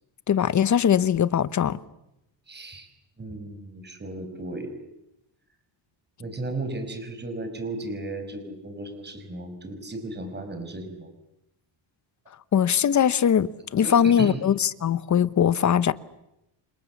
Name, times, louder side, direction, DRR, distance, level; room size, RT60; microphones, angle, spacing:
voice 1, 0.3-1.8 12.5-15.9, left 8 dB, 40° left, 1.0 m, -21 dB
voice 2, 2.5-2.9 3.2-4.7 6.2-11.1 13.8-14.4, right 2 dB, 20° right, 5.5 m, -35 dB
29.5 x 27.0 x 7.3 m
cardioid pair, 135°, 47 cm